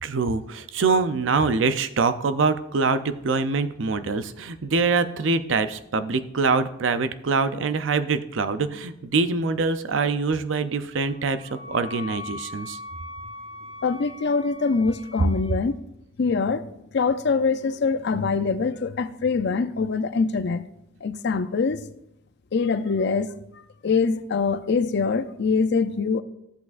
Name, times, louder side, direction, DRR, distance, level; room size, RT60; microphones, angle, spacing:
voice 1, 0.0-12.8, right 4 dB, 70° right, 0.5 m, -24 dB
Wind instrument woodwind instrument, 10.9-15.6, left 2 dB, 35° left, 1.4 m, -40 dB
voice 2, 13.8-15.7 16.2-16.7 16.9-20.6 21.0-21.8 22.5-23.3 23.8-26.2, left 4 dB, 60° left, 0.5 m, -24 dB
13.0 x 8.2 x 2.5 m
head